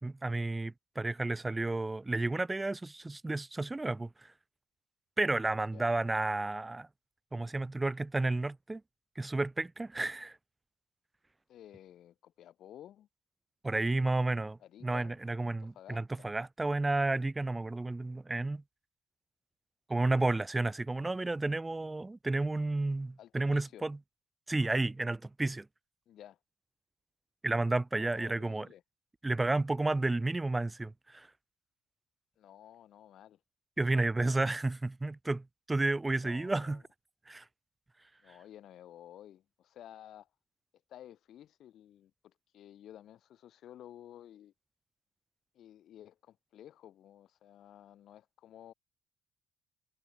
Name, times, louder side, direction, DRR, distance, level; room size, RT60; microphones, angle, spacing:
voice 1, 0.0-4.3 5.2-6.9 7.3-8.8 9.1-10.4 13.6-18.6 19.9-24.0 24.5-25.7 27.4-28.7 29.2-31.3 33.8-36.8 37.3-37.4, right 2 dB, 15° right, 1.5 m, -32 dB
voice 2, 5.6-5.9 11.5-13.1 14.6-15.2 15.5-16.3 23.2-23.8 26.1-26.4 27.9-28.8 32.4-33.4 36.2-36.8 38.2-40.3 40.9-44.5 45.5-48.7, left 11 dB, 65° left, 6.1 m, -53 dB
supercardioid pair, 75°, 0 cm